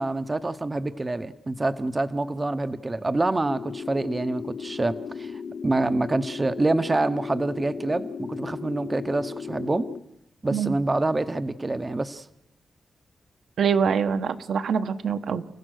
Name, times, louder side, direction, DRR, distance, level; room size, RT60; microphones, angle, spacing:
voice 1, 0.0-9.9 10.4-12.3, right 2 dB, 20° right, 11 dB, 0.7 m, -26 dB
sound 1, 3.4-10.0, left 6 dB, 60° left, 1.4 m, -36 dB
voice 2, 13.6-15.5, right 6 dB, 70° right, 9 dB, 1.0 m, -24 dB
30.0 x 16.5 x 6.4 m, 0.85 s
wide cardioid pair, 170°, 0 cm